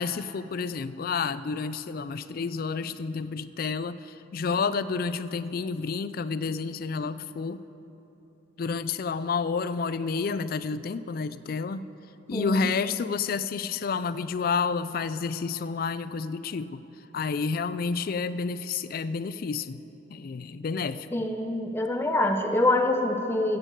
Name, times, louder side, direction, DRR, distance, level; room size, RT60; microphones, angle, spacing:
voice 1, 0.0-4.0 4.3-7.6 8.6-11.9 12.3-16.8 17.1-19.8 20.1-21.1, left 5 dB, 50° left, 14 dB, 0.4 m, -30 dB
voice 2, 12.3-12.6 21.1-23.6, left 2 dB, 10° left, 3 dB, 0.7 m, -25 dB
14.5 x 8.2 x 7.6 m, 3.0 s
head